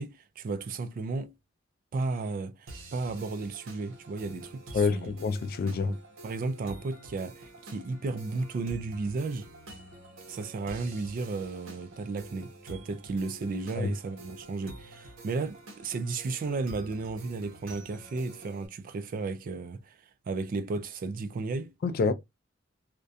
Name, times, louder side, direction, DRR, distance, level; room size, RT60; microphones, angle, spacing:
voice 1, 0.0-1.3 1.9-5.1 5.8-9.5 10.3-20.0 20.3-21.7, right 3 dB, 45° right, 0.3 m, -34 dB
sound 1, 2.7-18.7, right 2 dB, 85° right, 0.8 m, -48 dB
voice 2, 4.7-5.9 13.8-13.9 21.8-22.1, left 4 dB, 50° left, 0.3 m, -27 dB
2.3 x 2.1 x 2.6 m
head